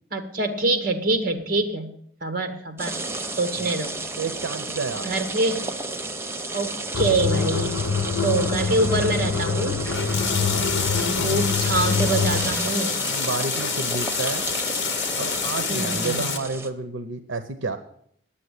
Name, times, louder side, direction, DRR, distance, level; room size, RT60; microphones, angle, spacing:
voice 1, 0.1-1.9 2.2-3.0 3.4-4.0 5.0-5.7 6.5-7.8 8.2-9.8 10.8-13.0 15.7-16.3, right 2 dB, 45° right, 7 dB, 1.5 m, -25 dB
sound 1, 2.8-16.7, right 2 dB, 15° right, 0.6 m, -32 dB
voice 2, 4.2-5.1 10.2-10.8 13.0-14.5 15.2-17.8, right 3 dB, 80° right, 10 dB, 0.8 m, -31 dB
sound 2, 6.9-12.6, left 5 dB, 85° left, 0.7 m, -25 dB
sound 3, 9.8-16.4, left 7 dB, 60° left, 1.0 m, -28 dB
10.0 x 8.6 x 8.2 m, 0.67 s
head